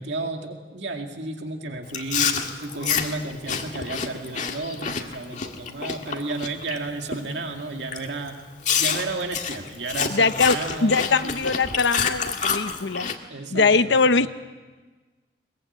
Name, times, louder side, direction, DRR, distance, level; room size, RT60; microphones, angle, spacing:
voice 1, 0.0-8.4 8.8-11.4 13.3-14.3, right 2 dB, 75° right, 3 dB, 2.2 m, -32 dB
Chewing mastication, 1.9-6.8 7.1-7.4 7.9-8.0 8.6-13.2, left 6 dB, 45° left, 1.8 m, -28 dB
voice 2, 10.1-13.1 13.5-14.3, left 4 dB, 80° left, 11 dB, 0.9 m, -21 dB
22.5 x 22.0 x 8.6 m, 1.3 s
head